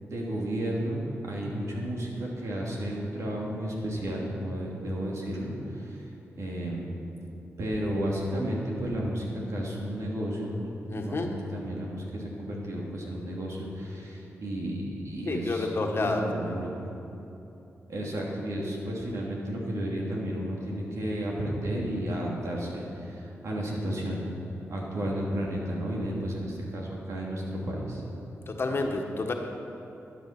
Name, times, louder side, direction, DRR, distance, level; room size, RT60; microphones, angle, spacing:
voice 1, 0.0-5.9 6.4-6.9 7.6-10.7 11.0-16.7 17.9-24.3 24.7-28.0, right 1 dB, 70° right, -3 dB, 2.9 m, -32 dB
voice 2, 10.9-11.3 15.3-16.6 28.5-29.3, left 3 dB, 50° left, 2 dB, 1.5 m, -29 dB
12.5 x 10.5 x 6.1 m, 2.9 s
cardioid pair, 65°, 5 cm